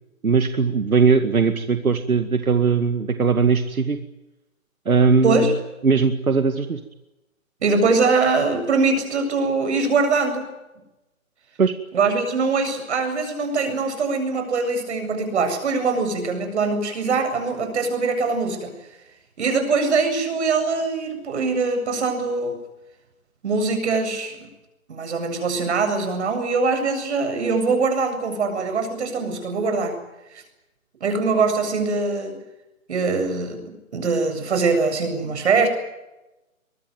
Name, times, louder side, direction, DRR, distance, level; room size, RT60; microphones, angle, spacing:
voice 1, 0.2-4.0 4.9-5.5 5.8-6.8 11.6-11.7, right 5 dB, 90° right, 8 dB, 2.2 m, -19 dB
voice 2, 7.6-10.5 11.9-18.7 19.4-22.6 23.4-24.5 24.9-30.0 30.3-30.4 31.0-32.4 32.9-35.7, right 4 dB, 55° right, 7 dB, 7.7 m, -22 dB
23.5 x 21.0 x 9.4 m, 0.99 s
hypercardioid pair, 150°, 41 cm